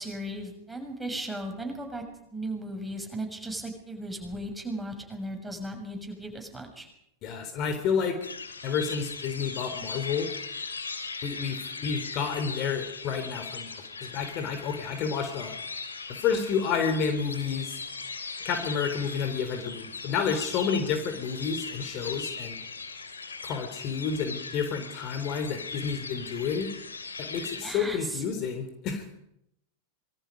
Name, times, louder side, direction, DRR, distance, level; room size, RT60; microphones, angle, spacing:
voice 1, 0.0-2.0 2.3-6.9 27.6-28.2, right 1 dB, 5° right, 3 dB, 6.7 m, -36 dB
voice 2, 7.2-8.2 8.6-10.3 11.2-13.7 14.0-15.5 16.1-17.8 18.4-22.6 23.4-26.7 27.2-29.1, left 6 dB, 35° left, 7 dB, 3.6 m, -30 dB
sound 1, 8.2-27.6, left 4 dB, 75° left, 3.4 m, -39 dB
26.5 x 23.5 x 5.4 m, 0.78 s
figure-of-eight pair, 90°, 0 cm